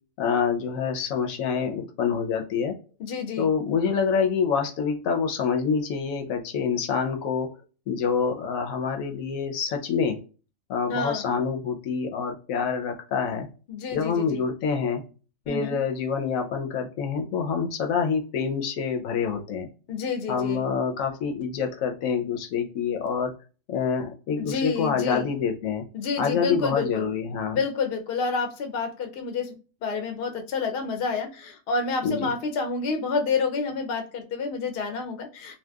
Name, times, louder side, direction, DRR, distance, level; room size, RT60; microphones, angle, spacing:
voice 1, 0.2-2.7 3.4-7.5 7.9-10.2 10.7-13.5 13.9-15.0 15.5-19.7 20.3-23.3 23.7-25.8 26.2-27.6 32.0-32.2, left 6 dB, 80° left, 4 dB, 1.0 m, -26 dB
voice 2, 3.0-3.5 10.9-11.3 13.7-14.4 15.5-15.8 19.9-20.7 24.4-25.3 25.9-27.1 27.5-35.5, left 4 dB, 60° left, 5 dB, 0.6 m, -29 dB
2.8 x 2.1 x 2.2 m, 0.35 s
omnidirectional pair, 1.4 m